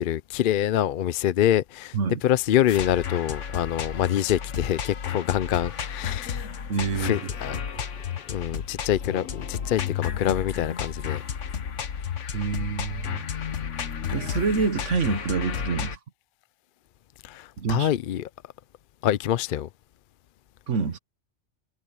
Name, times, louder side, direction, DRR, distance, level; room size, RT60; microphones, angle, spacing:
voice 1, 0.0-2.0 2.2-6.5 6.9-7.8 8.3-11.2 17.2-18.3 19.0-19.7, left 11 dB, 60° left, 0.6 m, -25 dB
sound 1, 2.7-16.0, left 8 dB, 80° left, 1.4 m, -32 dB
voice 2, 6.7-7.2 10.2-10.4 12.3-13.2 14.1-16.0 17.6-17.9 20.7-21.0, right 5 dB, 85° right, 1.5 m, -27 dB
omnidirectional pair, 1.2 m